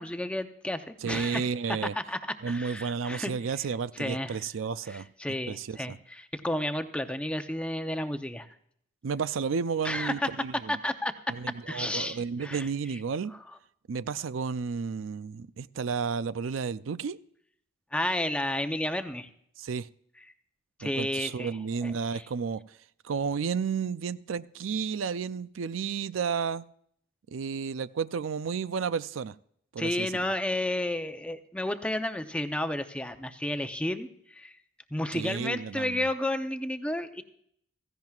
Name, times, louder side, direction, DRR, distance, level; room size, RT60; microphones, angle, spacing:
voice 1, 0.0-3.5 4.0-4.4 4.9-8.5 9.8-10.3 10.7-11.3 11.7-12.7 17.9-19.3 20.8-22.3 29.8-34.6 34.9-37.2, left 1 dB, 5° left, 0.7 m, -32 dB
voice 2, 1.0-1.9 2.4-5.1 5.5-6.0 9.0-10.8 11.3-13.3 13.9-17.2 19.6-19.9 20.8-22.6 23.0-26.6 27.3-29.3 29.7-30.1 35.1-36.1, right 6 dB, 85° right, 0.4 m, -32 dB
16.5 x 15.5 x 2.4 m
head